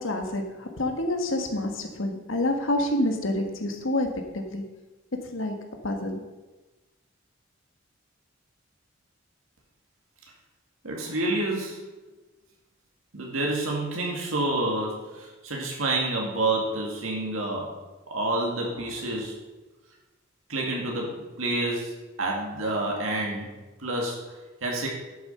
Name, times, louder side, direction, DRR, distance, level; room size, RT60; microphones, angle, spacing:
voice 1, 0.0-4.1 4.3-4.6 5.3-5.5 5.8-6.2, left 1 dB, 75° left, 4 dB, 1.6 m, -27 dB
voice 2, 10.8-11.8 13.1-17.8 18.1-19.4 20.5-23.5 23.8-24.9, right 2 dB, 85° right, -1 dB, 2.2 m, -29 dB
11.0 x 7.2 x 5.7 m, 1.2 s
head